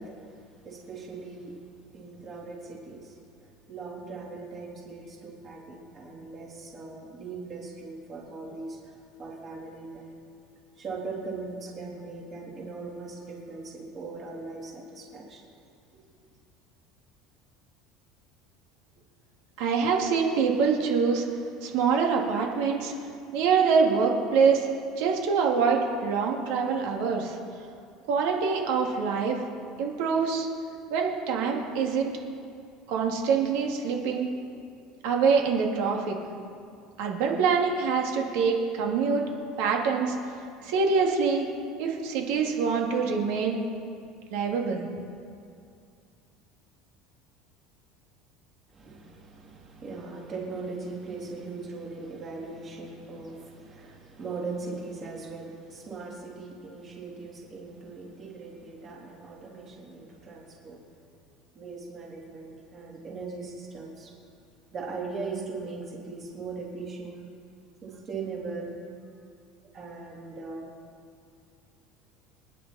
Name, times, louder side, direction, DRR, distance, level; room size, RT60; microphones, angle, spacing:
voice 1, 0.0-1.6 1.9-3.2 3.7-10.2 10.8-15.4 48.7-60.8 61.5-64.1 64.7-67.3 67.8-68.8 69.7-70.7, right 3 dB, 30° right, -3 dB, 3.5 m, -39 dB
voice 2, 19.6-21.3 21.6-22.9 23.3-24.7 25.0-27.4 28.1-29.4 29.8-30.5 30.9-32.1 32.9-34.3 35.0-36.2 37.0-39.3 39.6-40.1 40.6-41.5 41.8-43.6 44.3-44.9, right 5 dB, 70° right, 1 dB, 2.4 m, -25 dB
26.0 x 10.5 x 4.3 m, 2.4 s
cardioid pair, 165°, 0 cm